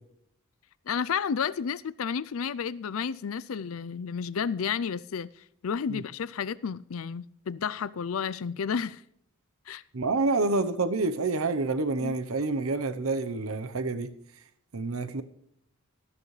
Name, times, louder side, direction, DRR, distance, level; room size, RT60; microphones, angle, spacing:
voice 1, 0.9-5.3 5.6-9.0 9.7-9.8 12.0-12.1, left 6 dB, 75° left, 0.5 m, -31 dB
voice 2, 9.9-14.1 14.7-15.2, right 3 dB, 90° right, 0.9 m, -28 dB
14.0 x 13.5 x 3.3 m
head